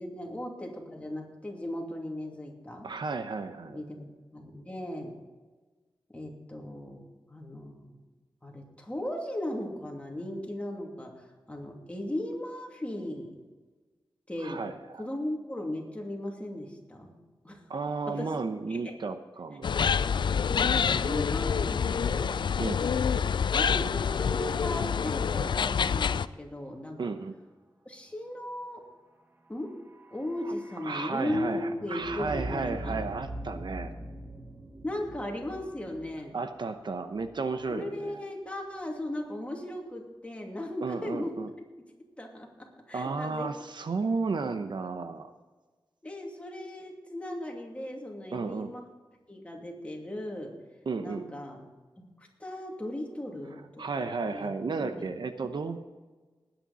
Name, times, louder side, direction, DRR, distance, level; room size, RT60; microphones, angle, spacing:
voice 1, 0.0-2.9 3.7-5.1 6.1-8.0 8.4-13.3 14.3-14.6 15.0-17.1 17.4-17.6 18.1-18.3 18.7-18.9 20.5-22.4 22.8-22.9 23.5-27.0 27.9-28.8 29.5-29.7 30.1-33.0 34.8-36.4 37.7-41.4 42.2-43.5 46.0-48.8 49.3-50.5 51.0-51.6 52.2-53.6 54.0-55.1, left 1 dB, 15° left, 0 dB, 2.6 m, -37 dB
voice 2, 2.8-3.8 14.4-15.1 17.7-19.7 22.6-22.8 27.0-27.3 30.8-33.9 36.3-38.2 40.8-41.5 42.9-45.3 48.3-48.7 50.9-51.2 53.8-55.8, right 4 dB, 65° right, 9 dB, 0.8 m, -33 dB
sound 1, 19.6-26.3, left 6 dB, 70° left, 0.4 m, -27 dB
sound 2, 29.6-37.7 38.0-38.1, right 1 dB, 25° right, 1.2 m, -43 dB
20.0 x 8.9 x 4.1 m, 1.3 s
wide cardioid pair, 100°, 8 cm